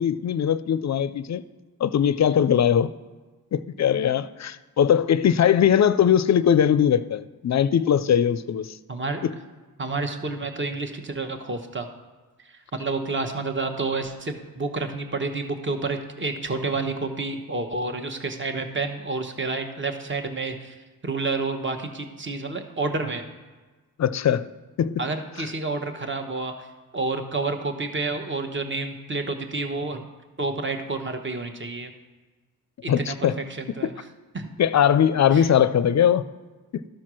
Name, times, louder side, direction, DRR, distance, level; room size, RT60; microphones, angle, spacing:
voice 1, 0.0-1.4 1.8-2.9 3.5-8.8 9.2-9.3 24.0-24.5 24.8-25.0 25.4-25.5 32.9-33.3 34.6-36.3 36.7-36.8, left 9 dB, 50° left, 0.4 m, -20 dB
voice 2, 8.9-9.2 9.8-11.9 12.5-20.7 21.0-23.2 25.0-26.7 26.9-30.0 30.4-31.9 32.8-33.1 33.6-33.9 34.3-34.5 35.3-35.5, right 3 dB, 30° right, 1.0 m, -29 dB
13.0 x 4.4 x 6.2 m
cardioid pair, 85°, 36 cm